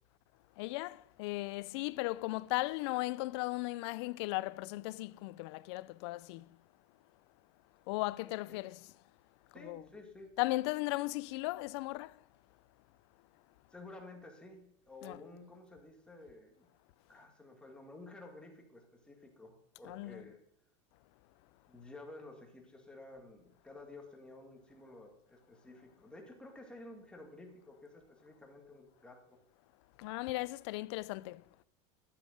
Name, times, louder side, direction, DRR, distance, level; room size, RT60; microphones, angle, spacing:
voice 1, 0.6-6.4 7.9-8.9 9.6-9.8 10.4-12.1 15.0-15.2 19.8-20.2 30.0-31.4, left 20 dB, 65° left, 0.4 m, -36 dB
voice 2, 9.5-10.3 13.7-16.7 17.1-20.4 21.7-29.4, left 2 dB, 5° left, 1.9 m, -52 dB
11.5 x 7.2 x 5.1 m
supercardioid pair, 140°, 15 cm